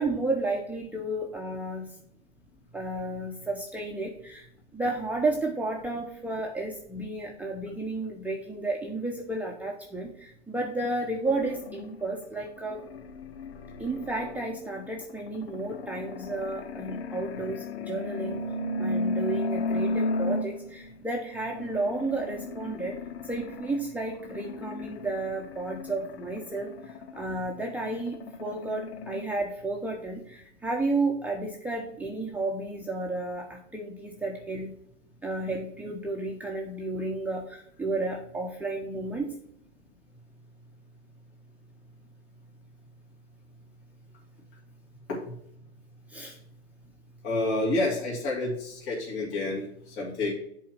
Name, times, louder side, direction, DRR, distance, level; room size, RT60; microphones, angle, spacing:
voice 1, 0.0-2.0 2.7-4.5 4.7-12.8 13.8-18.4 18.8-23.0 23.2-34.7 35.2-39.3 46.1-46.4, right 2 dB, 5° right, -1 dB, 1.0 m, -32 dB
sound 1, 11.3-20.9 21.4-29.3, left 2 dB, 65° left, 0.9 m, -35 dB
voice 2, 47.2-50.3, left 2 dB, 45° left, -4 dB, 2.7 m, -29 dB
7.6 x 4.7 x 5.8 m, 0.70 s
hypercardioid pair, 115°, 33 cm